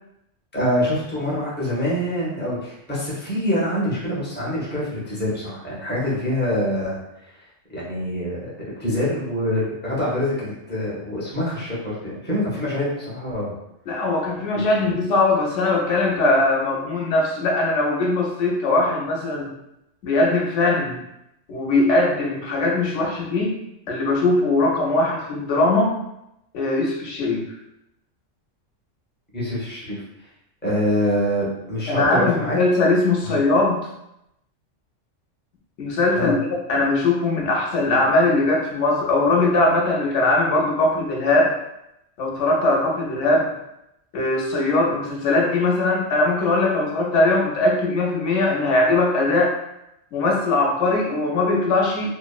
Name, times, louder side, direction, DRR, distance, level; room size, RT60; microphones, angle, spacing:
voice 1, 0.5-7.0 7.7-8.4 8.8-13.5 14.5-14.8 29.3-30.0 30.6-32.6 33.2-33.4 36.1-36.3, left 1 dB, 15° left, -6 dB, 0.4 m, -25 dB
voice 2, 13.9-19.5 20.0-21.0 21.5-23.6 23.9-26.0 26.5-27.4 31.9-33.9 35.8-41.5 42.2-43.5 44.1-49.5 50.1-52.1, left 2 dB, 75° left, -1 dB, 0.9 m, -20 dB
2.7 x 2.1 x 2.3 m, 0.84 s
omnidirectional pair, 1.3 m